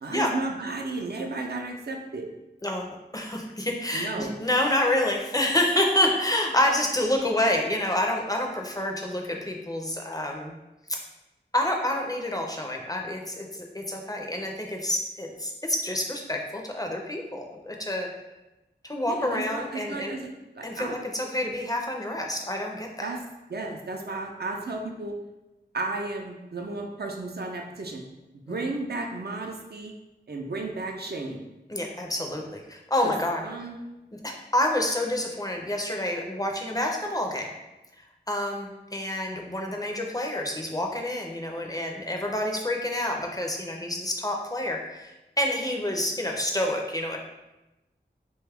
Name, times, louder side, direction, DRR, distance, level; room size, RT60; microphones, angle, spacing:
voice 1, 0.0-2.3 3.9-4.3 19.1-20.2 20.5-21.0 23.0-23.2 23.5-25.1 25.7-28.0 28.5-29.9 30.3-31.4 33.0-33.1 33.4-33.8, right 3 dB, 60° right, 2 dB, 0.4 m, -33 dB
voice 2, 2.6-10.5 10.9-11.0 11.5-13.5 13.7-18.1 18.8-20.1 20.6-23.1 28.5-28.6 31.7-33.4 34.2-37.5 38.3-47.2, left 1 dB, 20° left, 1 dB, 0.4 m, -28 dB
3.0 x 2.3 x 3.3 m, 1.0 s
wide cardioid pair, 50°, 19 cm